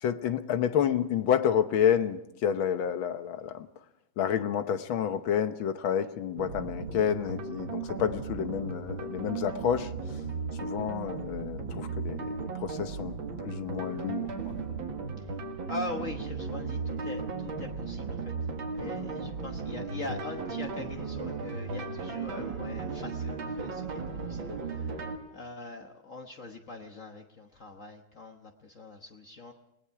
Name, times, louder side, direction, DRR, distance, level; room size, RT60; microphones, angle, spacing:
voice 1, 0.0-3.7 4.2-10.2 10.6-14.3 18.8-19.1, left 9 dB, 90° left, 10 dB, 1.8 m, -29 dB
sound 1, 6.4-25.2, right 5 dB, 80° right, 2.5 m, -36 dB
voice 2, 15.7-29.5, left 3 dB, 45° left, 3 dB, 1.5 m, -42 dB
Wind instrument woodwind instrument, 19.3-25.2, right 2 dB, 30° right, 2.8 m, -51 dB
29.0 x 19.5 x 4.7 m, 0.82 s
omnidirectional pair, 2.1 m